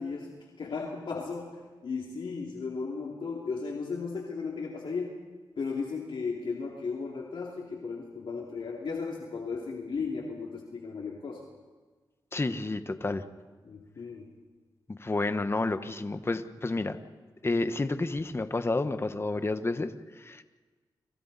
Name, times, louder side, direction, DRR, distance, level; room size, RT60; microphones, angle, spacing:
voice 1, 0.0-5.2 5.6-11.4 13.6-14.3, left 4 dB, 75° left, -1 dB, 2.8 m, -35 dB
voice 2, 12.3-13.2 14.9-17.0 17.4-20.4, left 2 dB, 30° left, 9 dB, 1.2 m, -30 dB
29.5 x 26.5 x 4.2 m, 1.3 s
cardioid pair, 70°, 9 cm